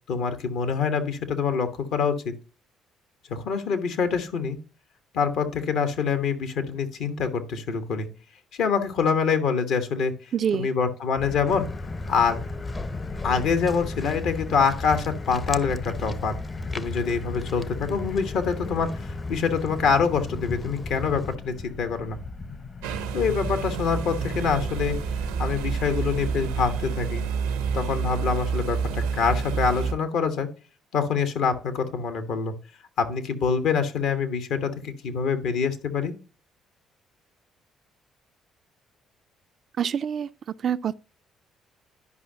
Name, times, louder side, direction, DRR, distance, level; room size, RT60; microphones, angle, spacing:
voice 1, 0.1-2.3 3.3-4.6 5.1-8.1 8.5-10.1 10.5-11.7 12.1-12.4 13.2-16.3 16.7-22.2 23.1-25.0 25.4-27.3 27.7-30.5 30.9-32.5 33.0-36.1, left 6 dB, 70° left, 1.1 m, -25 dB
voice 2, 10.3-10.7 39.8-40.3 40.6-40.9, right 8 dB, 55° right, 0.3 m, -25 dB
sound 1, 11.2-26.9, left 3 dB, 45° left, 1.0 m, -39 dB
Walk footsteps, 11.5-21.4, left 2 dB, 25° left, 0.6 m, -35 dB
sound 2, 22.8-29.9, right 6 dB, 85° right, 0.7 m, -28 dB
11.0 x 5.3 x 2.7 m
hypercardioid pair, 55°, 0 cm